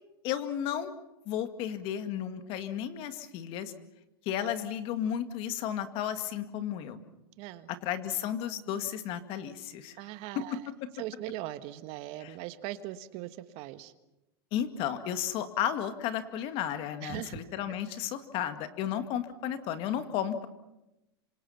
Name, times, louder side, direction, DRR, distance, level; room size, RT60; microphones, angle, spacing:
voice 1, 0.2-1.0 1.3-3.7 4.3-7.0 7.7-10.0 10.4-10.9 12.2-12.4 14.5-20.5, left 10 dB, 45° left, 9 dB, 2.1 m, -33 dB
voice 2, 7.4-7.7 10.0-10.6 11.0-13.9 17.0-17.4, right 14 dB, 50° right, 12 dB, 1.4 m, -40 dB
27.5 x 25.5 x 5.8 m, 0.93 s
supercardioid pair, 130°, 13 cm